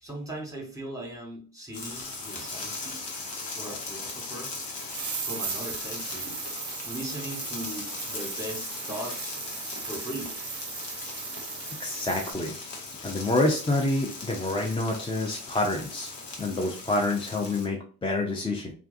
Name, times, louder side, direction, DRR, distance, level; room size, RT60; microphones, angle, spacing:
voice 1, 0.0-3.0 3.5-4.5 5.2-6.3 6.8-9.3 9.8-10.3, right 1 dB, 5° right, 1 dB, 1.2 m, -39 dB
sound 1, 1.7-17.7, left 3 dB, 60° left, 0.9 m, -39 dB
sound 2, 4.8-12.3, right 6 dB, 40° right, 0.6 m, -37 dB
voice 2, 11.8-12.6 13.0-16.1 16.4-18.7, left 2 dB, 10° left, 0 dB, 0.4 m, -27 dB
2.3 x 2.2 x 2.4 m, 0.40 s
hypercardioid pair, 40°, 47 cm